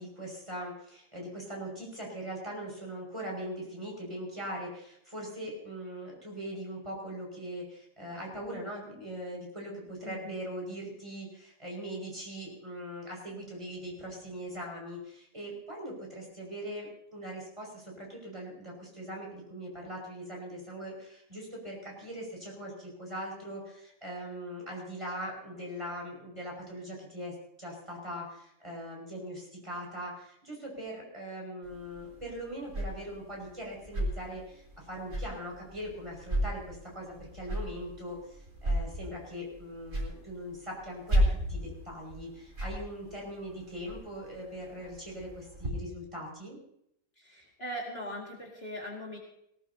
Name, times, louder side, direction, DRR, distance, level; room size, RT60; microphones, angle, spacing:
voice 1, 0.0-41.2 41.5-46.6, equal, 20° right, -2 dB, 6.0 m, -41 dB
voice 2, 10.0-10.3 47.2-49.2, equal, 40° left, -2 dB, 2.5 m, -40 dB
sound 1, 31.6-45.7, equal, 55° right, 4.3 m, -35 dB
19.0 x 18.5 x 2.8 m, 0.73 s
omnidirectional pair, 1.5 m